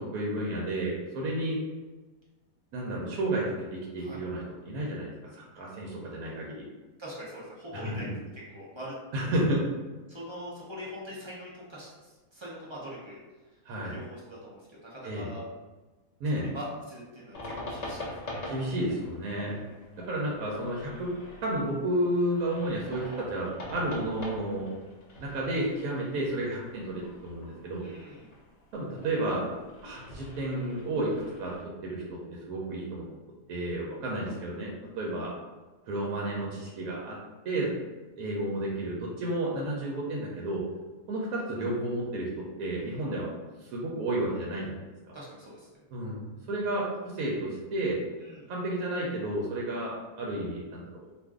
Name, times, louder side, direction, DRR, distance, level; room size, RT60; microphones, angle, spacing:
voice 1, 0.0-1.6 2.7-6.7 7.7-8.1 9.1-9.6 13.7-13.9 15.0-15.3 16.2-16.4 18.5-19.6 20.1-21.1 21.4-24.7 25.2-27.8 28.7-29.4 29.8-31.1 31.4-31.5 31.8-33.0 33.5-35.3 35.9-37.2 37.4-37.7 38.2-40.6 41.1-43.3 43.6-44.8 45.9-48.0 48.5-51.0, right 1 dB, 85° right, -3 dB, 1.1 m, -31 dB
voice 2, 7.0-8.1 8.3-8.9 9.2-9.4 10.1-13.2 13.8-15.4 16.4-18.4 19.4-19.7 27.8-28.3 34.1-34.2 42.8-43.1 45.1-45.7 48.2-48.5, equal, 35° right, -6 dB, 0.4 m, -43 dB
sound 1, 17.3-31.6, left 1 dB, 80° left, 0.3 m, -44 dB
2.5 x 2.5 x 3.5 m, 1.2 s
omnidirectional pair, 1.5 m